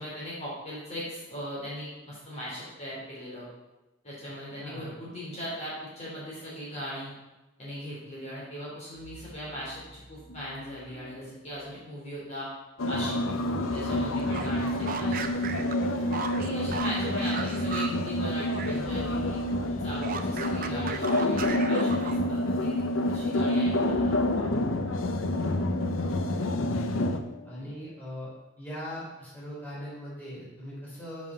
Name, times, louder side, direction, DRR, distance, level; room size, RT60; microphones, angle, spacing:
voice 1, 0.0-3.4 4.0-7.1 7.6-12.5 12.9-15.6 16.4-19.4 19.8-24.7 27.6-27.7, equal, 35° left, -7 dB, 3.3 m, -39 dB
voice 2, 4.6-5.0 27.4-28.3 28.6-31.3, equal, 10° left, -8 dB, 3.6 m, -40 dB
sound 1, 8.9-12.4 13.4-17.8 18.3-27.5, left 1 dB, 55° left, 2.6 m, -50 dB
sound 2, 12.8-27.2, left 1 dB, 80° left, 0.8 m, -28 dB
sound 3, 14.1-18.9 19.1-22.4, right 5 dB, 45° right, 0.7 m, -37 dB
7.2 x 5.9 x 6.5 m, 1.0 s
head